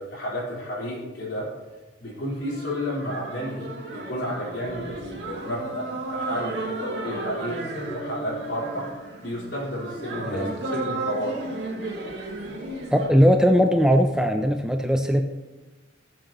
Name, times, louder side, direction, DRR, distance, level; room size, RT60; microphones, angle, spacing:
voice 1, 0.0-1.4 2.0-5.9 6.1-8.9 9.2-11.3, equal, 65° left, -5 dB, 4.1 m, -31 dB
sound 1, 2.1-13.1, right 2 dB, 60° right, 2.5 m, -34 dB
voice 2, 12.9-15.2, equal, 5° right, 5 dB, 0.4 m, -19 dB
18.0 x 7.7 x 3.0 m, 1.1 s
head